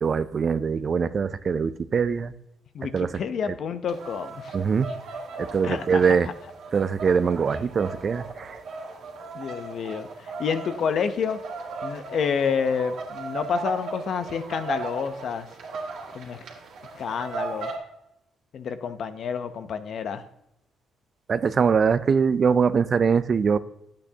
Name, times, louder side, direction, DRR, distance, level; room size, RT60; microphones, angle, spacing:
voice 1, 0.0-2.3 2.9-3.1 3.5-3.6 4.5-4.9 5.4-6.3 6.7-8.6 21.3-23.6, right 6 dB, 45° right, 15 dB, 0.4 m, -22 dB
voice 2, 2.7-4.6 5.6-6.2 9.3-11.4 11.8-15.5 16.1-16.4 17.0-17.7 18.5-20.2, left 6 dB, 60° left, 10 dB, 0.6 m, -29 dB
sound 1, 3.9-17.8, right 3 dB, 80° right, 2.0 m, -37 dB
10.5 x 8.5 x 2.8 m, 0.81 s
cardioid pair, 90°, 0 cm